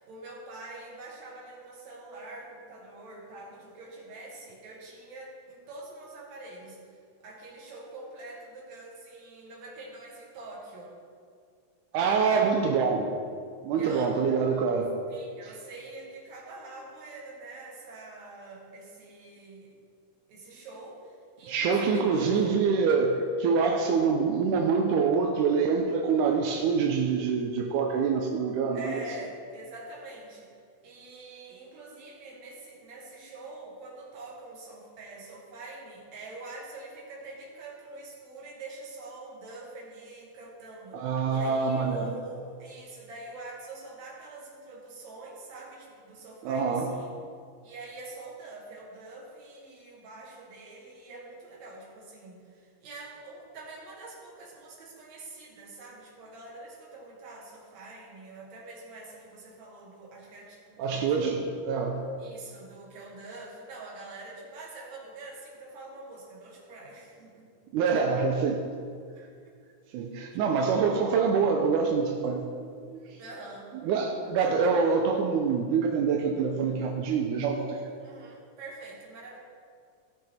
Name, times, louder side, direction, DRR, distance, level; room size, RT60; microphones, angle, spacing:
voice 1, 0.0-6.8 7.2-10.9 13.8-14.1 15.1-19.7 20.3-22.5 28.7-30.5 30.8-47.1 47.6-61.6 62.2-67.5 69.2-69.6 70.3-70.5 73.2-73.7 78.0-79.4, right 2 dB, 65° right, -3 dB, 3.1 m, -45 dB
voice 2, 11.9-13.1 13.6-14.9 15.4-15.5 21.5-29.0 40.9-42.1 46.4-46.9 60.8-62.0 67.7-68.6 69.9-73.1 73.8-77.9, right 5 dB, 85° right, 2 dB, 2.2 m, -26 dB
16.0 x 6.1 x 4.4 m, 2.2 s
omnidirectional pair, 3.5 m